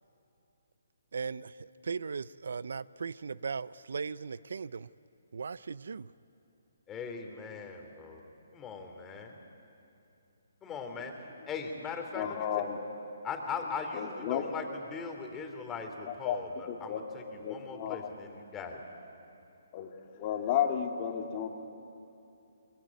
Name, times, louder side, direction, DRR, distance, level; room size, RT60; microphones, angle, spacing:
voice 1, 1.1-4.9 5.3-6.1, right 5 dB, 70° right, 19 dB, 0.5 m, -38 dB
voice 2, 6.9-8.2 8.5-9.3 10.6-11.1 11.5-12.5 13.2-14.6 14.9-17.2 17.5-18.8, left 5 dB, 15° left, 4 dB, 3.0 m, -39 dB
voice 3, 12.1-12.8 13.9-14.4 16.1-16.4 16.7-17.1 17.4-18.1 19.7-21.5, left 9 dB, 35° left, 4 dB, 2.2 m, -33 dB
23.0 x 22.5 x 9.6 m, 2.8 s
hypercardioid pair, 145°, 0 cm